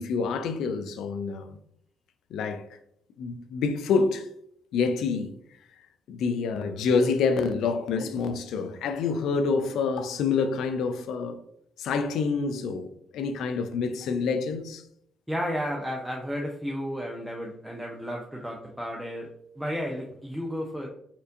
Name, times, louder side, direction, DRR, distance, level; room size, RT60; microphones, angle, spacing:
voice 1, 0.0-1.6 2.3-2.7 3.2-4.3 4.7-5.4 6.1-11.4 11.8-14.8, left 5 dB, 80° left, 0.4 m, -27 dB
voice 2, 15.3-19.3 19.6-20.9, equal, ahead, 0.5 m, -32 dB
4.3 x 2.5 x 2.6 m
cardioid pair, 90°, 0 cm